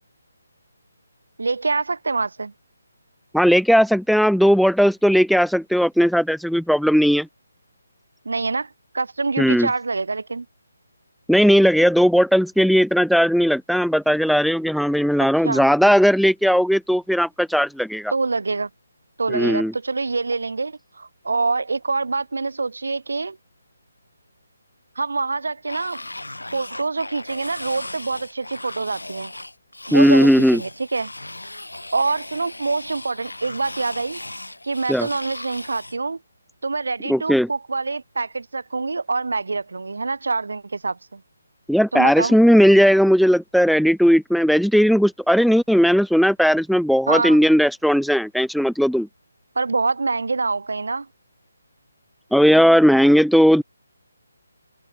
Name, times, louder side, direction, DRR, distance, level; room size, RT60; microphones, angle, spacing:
voice 1, 1.4-2.5 8.2-10.5 15.4-15.7 18.1-18.7 19.2-23.4 25.0-26.0 26.5-29.3 29.9-31.1 31.9-34.2 34.6-36.2 36.6-41.2 41.9-42.4 47.1-47.4 49.5-51.1, right 3 dB, 70° right, 4.5 m, -25 dB
voice 2, 3.3-7.3 9.4-9.7 11.3-18.1 19.3-19.7 29.9-30.6 34.9-35.1 37.1-37.5 41.7-49.1 52.3-53.6, equal, ahead, 0.6 m, -17 dB
sound 1, 25.7-36.0, left 2 dB, 85° left, 3.7 m, -37 dB
figure-of-eight pair, 150°, 0 cm